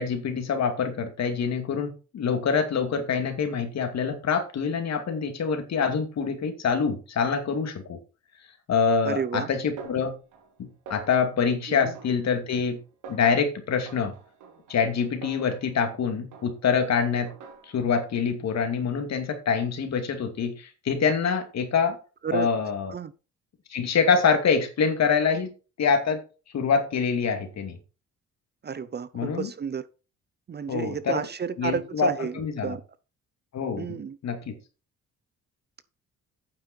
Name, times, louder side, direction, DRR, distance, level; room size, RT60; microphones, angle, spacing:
voice 1, 0.0-8.0 8.7-10.1 10.6-12.8 13.1-14.1 14.7-17.3 17.7-22.0 22.3-22.9 23.7-25.5 25.8-26.2 26.5-27.8 29.1-29.5 30.7-31.3 31.6-32.1 32.3-32.8 33.5-34.0 34.2-34.5, left 6 dB, 60° left, 2.5 m, -25 dB
voice 2, 9.0-9.5 11.7-11.9 22.2-22.5 22.9-23.1 28.6-29.9 30.5-32.8 33.8-34.2, right 6 dB, 35° right, 0.7 m, -31 dB
Snare drum, 9.8-10.6 10.9-11.4 11.9-12.7 13.0-13.4 13.9-16.0 16.3-16.8 17.3-18.0, right 4 dB, 80° right, 2.6 m, -47 dB
9.0 x 7.6 x 4.5 m
cardioid pair, 90°, 30 cm